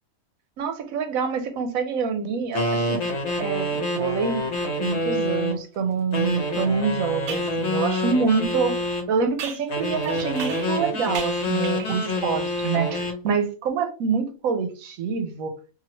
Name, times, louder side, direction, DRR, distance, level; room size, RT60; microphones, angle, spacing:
voice 1, 0.6-3.0 3.4-4.5 4.8-8.8 9.1-15.6, right 5 dB, 80° right, 1.1 m, -26 dB
sound 1, 2.5-5.6 6.1-9.1 9.7-13.2, left 1 dB, 55° left, 1.1 m, -27 dB
sound 2, 6.3-6.4 7.3-7.5 9.4-10.8 11.1-12.0, right 6 dB, 65° right, 0.8 m, -37 dB
2.8 x 2.7 x 2.9 m
omnidirectional pair, 1.5 m